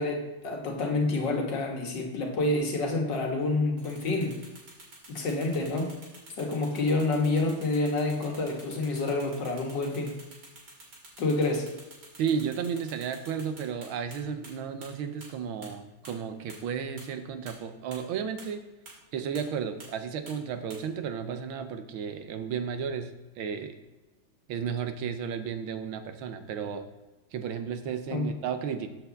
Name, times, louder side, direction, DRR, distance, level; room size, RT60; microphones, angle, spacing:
voice 1, 0.0-4.3 5.1-5.9 6.4-10.2 11.2-11.7 28.1-28.3, left 2 dB, 60° left, 0 dB, 2.0 m, -28 dB
sound 1, 3.8-14.2 14.4-14.5 14.8-14.9 15.2-15.3 15.6-15.7 16.0-16.1 16.5-16.6 17.0-17.1 17.5-17.6 17.9-18.0 18.4-18.5 18.9-19.0 19.3-19.4 19.8-19.9 20.3-20.4 20.7-20.8, right 2 dB, 60° right, 3.0 m, -48 dB
voice 2, 12.2-18.6 19.1-23.8 24.5-26.8 27.3-28.9, right 7 dB, 85° right, 9 dB, 1.6 m, -33 dB
7.9 x 4.4 x 6.9 m, 1.1 s
omnidirectional pair, 2.2 m